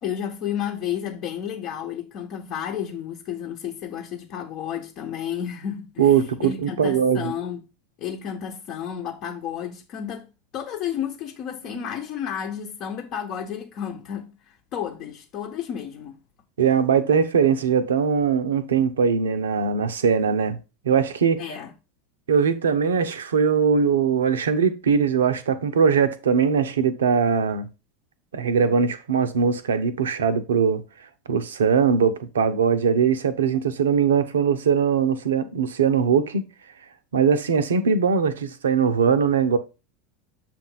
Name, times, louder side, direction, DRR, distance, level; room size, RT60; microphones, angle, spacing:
voice 1, 0.0-6.1 6.4-7.6 8.0-10.3 10.5-16.2 21.4-21.7, left 9 dB, 45° left, 1.0 m, -32 dB
voice 2, 6.0-7.3 11.7-11.9 16.6-20.6 20.8-21.4 22.3-27.7 28.3-30.8 31.3-36.4 37.1-39.6, right 6 dB, 75° right, 0.7 m, -21 dB
7.3 x 2.5 x 5.6 m
figure-of-eight pair, 85°, 0 cm